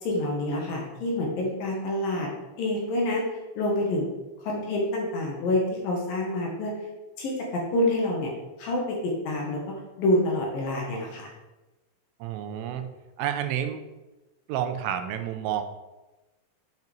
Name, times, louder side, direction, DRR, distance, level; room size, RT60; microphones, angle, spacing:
voice 1, 0.0-2.3 2.6-3.2 3.6-4.1 4.4-6.7 7.2-8.3 8.6-9.6 10.0-11.3, left 1 dB, 60° left, -1 dB, 2.6 m, -27 dB
voice 2, 12.2-12.9 13.2-13.8 14.5-15.6, right 10 dB, 85° right, 8 dB, 3.3 m, -29 dB
9.2 x 5.5 x 5.3 m, 1.1 s
omnidirectional pair, 5.8 m